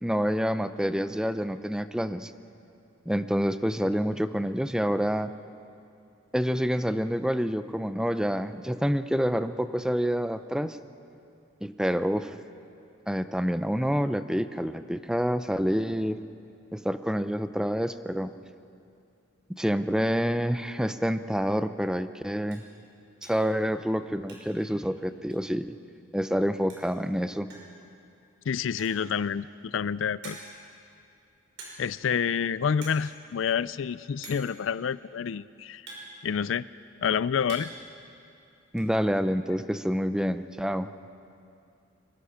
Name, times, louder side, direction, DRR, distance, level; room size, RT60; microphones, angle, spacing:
voice 1, 0.0-2.3 3.1-5.3 6.3-10.8 11.6-12.3 13.1-16.2 16.7-18.3 19.6-22.6 23.2-25.7 26.1-27.5 38.7-40.9, equal, 5° right, 11 dB, 0.5 m, -27 dB
sound 1, 22.5-22.7 23.2-23.5 23.8-24.7 24.9-25.0 25.3-25.4 26.4-26.5 26.7-27.0 27.5-27.8 28.6-29.1 29.7-29.8 30.2-30.7 31.6-32.0 32.3-32.5 32.7-33.1 33.3-33.4 34.2-34.6 35.4-36.7 37.1-37.9 38.1-38.9, right 2 dB, 65° right, 5.5 m, -45 dB
voice 2, 28.5-30.4 31.8-35.9 36.2-36.7 37.0-37.7, left 7 dB, 75° left, 18 dB, 0.4 m, -28 dB
23.0 x 20.5 x 5.8 m, 2.6 s
head